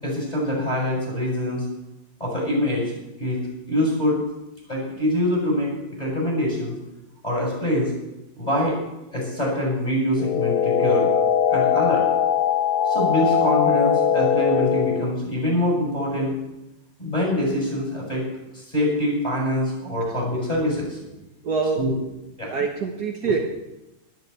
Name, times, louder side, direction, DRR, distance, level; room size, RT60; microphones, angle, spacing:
voice 1, 0.0-1.6 2.2-2.9 3.2-3.4 3.7-4.2 4.7-5.7 6.0-6.8 7.2-7.9 8.4-8.8 9.1-11.1 11.5-12.0 12.9-16.3 17.0-18.2 18.5-21.0 21.8-21.9 22.4-22.5 23.2-23.3, left 1 dB, 20° left, -2 dB, 7.6 m, -24 dB
sound 1, 10.2-15.1, left 8 dB, 65° left, 1.1 m, -21 dB
voice 2, 21.4-21.8 22.5-23.4, right 5 dB, 55° right, 2 dB, 1.7 m, -24 dB
12.5 x 10.5 x 8.3 m, 0.95 s
omnidirectional pair, 2.1 m